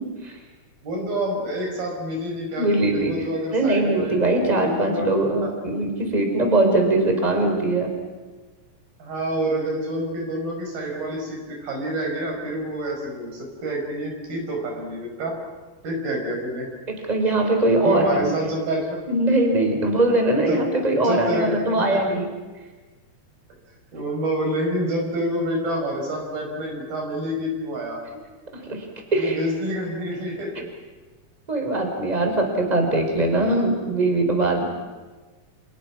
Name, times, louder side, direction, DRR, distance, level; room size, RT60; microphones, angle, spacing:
voice 1, 0.8-4.2 4.6-5.1 5.4-5.5 9.0-15.4 15.8-16.7 17.8-19.0 20.5-20.7 21.0-21.5 23.9-28.0 29.1-30.6, right 1 dB, 75° right, 1 dB, 7.4 m, -28 dB
voice 2, 2.6-3.2 3.5-7.9 17.1-18.3 19.1-22.3 28.7-28.9 29.1-29.4 31.5-34.6, right 2 dB, 10° right, 3 dB, 4.1 m, -21 dB
29.5 x 28.5 x 6.1 m, 1.3 s
omnidirectional pair, 4.3 m